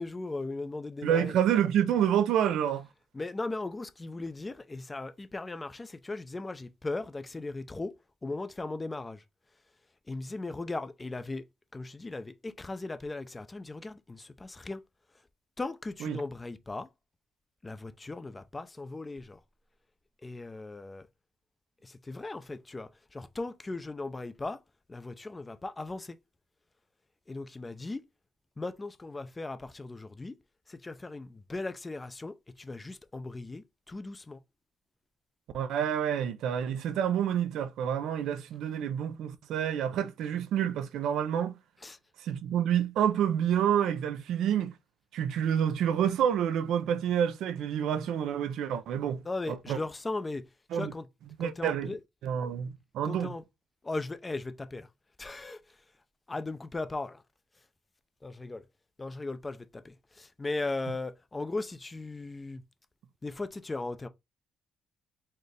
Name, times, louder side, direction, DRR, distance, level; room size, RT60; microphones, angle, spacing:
voice 1, 0.0-1.4 3.1-7.9 8.2-9.2 10.1-11.5 11.7-14.8 15.6-16.9 17.6-19.4 20.2-21.1 21.8-24.6 24.9-26.2 27.3-28.0 28.6-30.4 30.7-34.4 41.8-42.0 49.2-50.4 50.7-51.1 51.4-52.0 53.0-53.4 53.8-54.9 55.2-55.8 56.3-57.2 58.2-58.6 59.0-62.6 63.2-64.1, left 2 dB, 20° left, 0.5 m, -37 dB
voice 2, 1.0-2.9 16.0-16.2 35.5-41.5 42.2-44.7 45.1-49.2 49.5-49.8 50.7-50.9 51.4-51.9 52.2-53.3, right 9 dB, 80° right, 0.5 m, -28 dB
4.4 x 2.5 x 3.2 m
cardioid pair, 90°, 0 cm